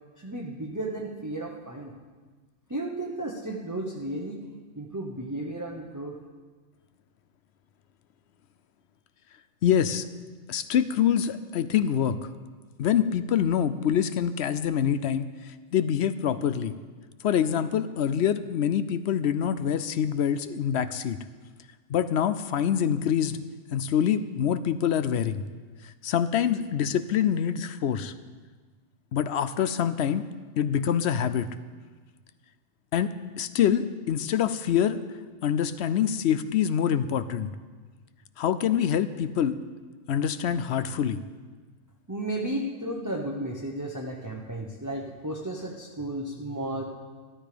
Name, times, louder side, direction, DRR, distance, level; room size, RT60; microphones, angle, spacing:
voice 1, 0.2-1.9 2.7-4.4 4.7-6.2 42.1-46.8, right 1 dB, 15° right, -1 dB, 0.9 m, -33 dB
voice 2, 9.6-10.1 10.5-12.2 12.8-16.7 17.2-21.2 21.9-23.4 23.7-25.4 25.8-28.1 29.1-30.3 30.6-31.5 32.9-35.0 35.4-37.5 38.4-39.6 40.1-41.2, left 9 dB, 65° left, 13 dB, 0.7 m, -25 dB
13.5 x 12.5 x 5.1 m, 1.4 s
omnidirectional pair, 1.4 m